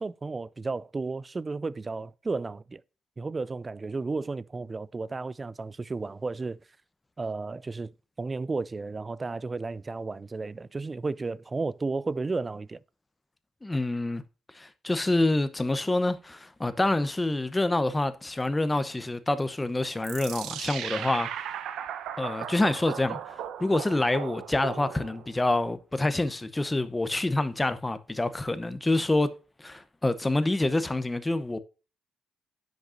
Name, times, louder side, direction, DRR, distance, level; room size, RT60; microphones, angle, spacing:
voice 1, 0.0-2.8 3.2-6.6 7.2-7.9 8.2-12.8, right 3 dB, 25° right, 0.4 m, -33 dB
voice 2, 13.6-14.2 14.5-21.5 22.2-29.3 29.6-31.6, left 2 dB, 15° left, 0.8 m, -27 dB
sound 1, 20.0-25.3, right 9 dB, 80° right, 0.8 m, -37 dB
10.0 x 6.4 x 2.6 m
cardioid pair, 90°, 0 cm